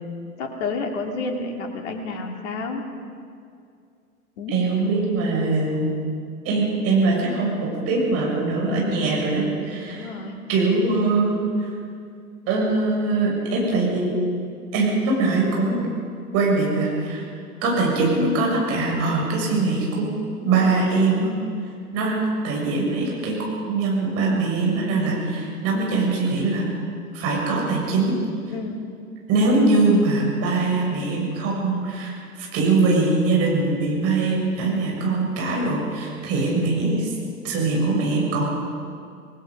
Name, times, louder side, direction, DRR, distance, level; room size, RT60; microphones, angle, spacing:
voice 1, 0.4-2.8 4.4-4.5 9.9-10.4 25.9-26.0 28.5-28.8, left 3 dB, 50° left, 2 dB, 2.9 m, -30 dB
voice 2, 4.5-5.9 6.4-10.1 10.5-11.7 12.5-14.1 14.7-15.9 16.3-17.2 17.6-20.1 20.4-21.3 21.9-22.2 22.4-23.4 23.7-26.7 27.1-28.1 29.3-37.1 37.4-38.4, right 3 dB, 30° right, -2 dB, 7.2 m, -22 dB
27.5 x 19.5 x 5.4 m, 2.3 s
figure-of-eight pair, 105°, 45 cm